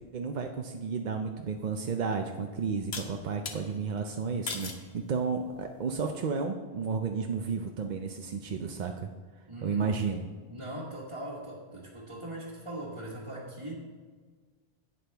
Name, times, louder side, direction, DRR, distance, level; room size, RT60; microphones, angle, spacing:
voice 1, 0.1-9.1 9.6-10.2, right 5 dB, 50° right, 3 dB, 0.6 m, -32 dB
sound 1, 1.6-1.7 2.9-3.6 4.5-4.9 5.5-5.9, left 4 dB, 70° left, 1.2 m, -38 dB
voice 2, 9.5-9.9 10.5-13.8, right 1 dB, 25° right, -7 dB, 1.5 m, -40 dB
11.5 x 8.5 x 3.4 m, 1.5 s
omnidirectional pair, 1.1 m